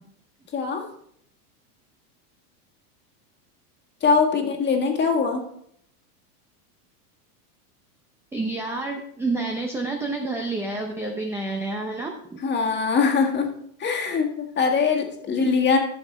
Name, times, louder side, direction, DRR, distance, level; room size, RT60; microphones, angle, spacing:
voice 1, 0.5-0.8 4.0-5.4 12.4-13.5 13.8-15.8, left 5 dB, 25° left, 1 dB, 1.8 m, -22 dB
voice 2, 8.3-12.1, right 2 dB, 5° right, 1 dB, 0.6 m, -28 dB
12.5 x 7.0 x 3.3 m, 0.68 s
supercardioid pair, 135°, 47 cm